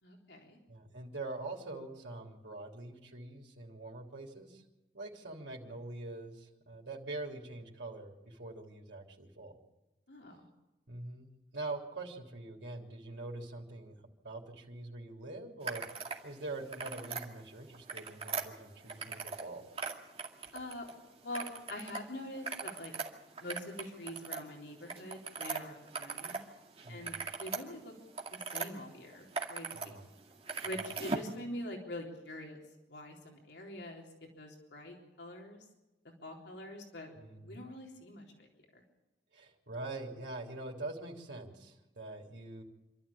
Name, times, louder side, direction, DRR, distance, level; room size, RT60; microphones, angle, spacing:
voice 1, 0.0-0.6 10.1-10.5 20.5-20.9 21.2-22.9 23.4-26.4 26.9-27.9 28.3-29.9 30.6-32.6 32.9-34.1 34.4-35.7 36.2-37.1 37.4-38.8, left 1 dB, 80° left, 0 dB, 3.8 m, -45 dB
voice 2, 0.7-4.6 4.9-9.6 10.9-14.0 14.2-19.6 26.8-27.2 29.7-30.1 30.6-30.9 37.2-37.6 39.3-42.6, right 2 dB, 90° right, -1 dB, 3.4 m, -44 dB
sound 1, 15.6-16.2 16.6-17.3 17.7-19.5 19.7-20.9 21.3-22.0 22.3-26.4 26.8-28.7 29.1-29.9 30.2-31.3, right 4 dB, 35° right, 2.2 m, -40 dB
27.5 x 13.0 x 8.6 m, 1.0 s
head